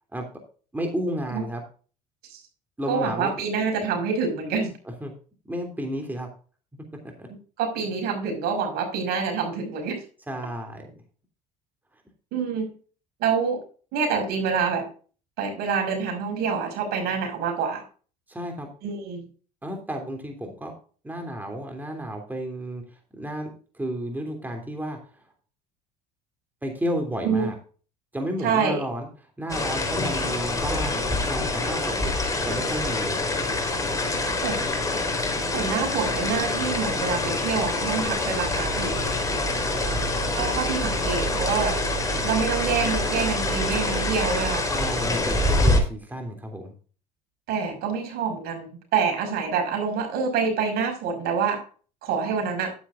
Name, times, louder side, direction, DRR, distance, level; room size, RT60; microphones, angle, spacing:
voice 1, 0.7-1.6 2.8-3.3 5.0-5.1 5.5-6.3 7.2-7.3 10.3-10.9 18.3-18.7 19.6-20.7 21.0-22.8 23.1-25.0 26.6-27.5 28.1-29.1 29.4-32.1 32.4-33.2 39.6-40.2 44.7-46.7, equal, 10° right, 3 dB, 3.1 m, -32 dB
voice 2, 2.9-4.7 7.6-10.0 12.3-12.7 13.2-13.6 13.9-14.8 15.4-17.8 18.8-19.2 27.2-27.5 28.4-28.8 34.4-34.6 35.5-39.1 40.3-41.8 42.2-44.7 47.5-51.6 52.0-52.7, right 6 dB, 65° right, 3 dB, 5.8 m, -26 dB
sound 1, 29.5-45.8, left 2 dB, 20° left, 3.9 m, -25 dB
11.5 x 10.5 x 2.5 m, 0.39 s
hypercardioid pair, 80°, 18 cm